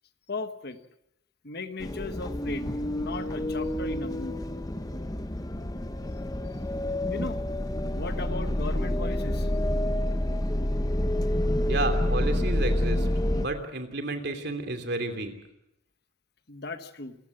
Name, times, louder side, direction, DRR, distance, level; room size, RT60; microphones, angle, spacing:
voice 1, 0.3-0.8 1.4-4.4 7.1-7.4 7.9-9.5 16.5-17.2, left 3 dB, 50° left, 9 dB, 1.3 m, -37 dB
sound 1, 1.8-13.5, left 1 dB, 20° left, 0.8 m, -28 dB
voice 2, 11.7-13.1 13.3-15.3, right 2 dB, 55° right, 7 dB, 3.1 m, -31 dB
28.0 x 15.5 x 7.8 m, 0.82 s
head